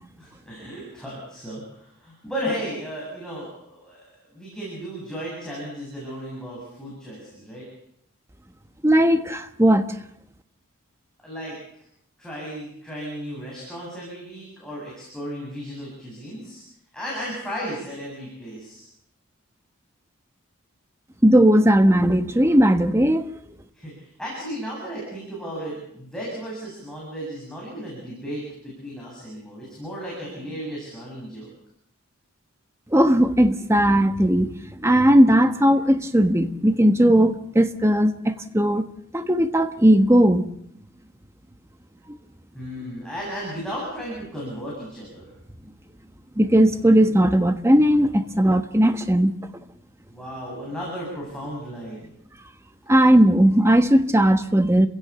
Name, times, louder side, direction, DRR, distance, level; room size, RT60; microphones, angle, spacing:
voice 1, 0.2-4.0 4.3-7.6 11.2-11.6 12.2-16.6 16.9-18.9 23.7-31.5 42.5-45.3 50.1-52.1, equal, 5° left, 7.7 m, -34 dB
voice 2, 8.8-9.9 21.2-23.3 32.9-38.9 39.1-40.5 42.1-42.2 46.4-49.3 52.9-54.9, equal, 10° right, 1.2 m, -17 dB
29.5 x 16.5 x 7.0 m
head